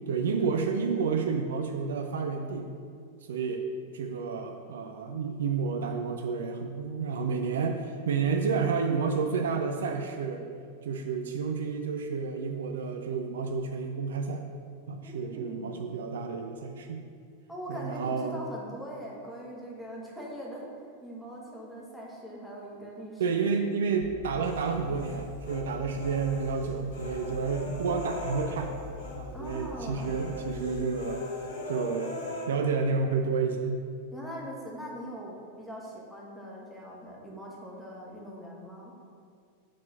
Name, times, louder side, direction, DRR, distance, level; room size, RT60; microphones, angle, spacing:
voice 1, 0.1-2.7 3.3-3.6 3.9-10.5 10.8-14.4 14.9-17.0 17.7-18.4 23.2-28.7 29.1-31.3 31.7-32.1 32.5-33.8, right 5 dB, 60° right, 4 dB, 0.4 m, -30 dB
voice 2, 15.0-16.1 17.5-20.7 21.0-23.5 29.3-30.2 34.1-39.1, equal, ahead, -5 dB, 1.4 m, -42 dB
sound 1, 24.0-30.9, left 3 dB, 30° left, 0.5 m, -44 dB
Human voice, 24.4-25.6 25.9-29.2 29.4-29.7 30.0-32.4, left 2 dB, 60° left, 1.3 m, -40 dB
4.9 x 3.7 x 5.6 m, 2.2 s
figure-of-eight pair, 90°, 0 cm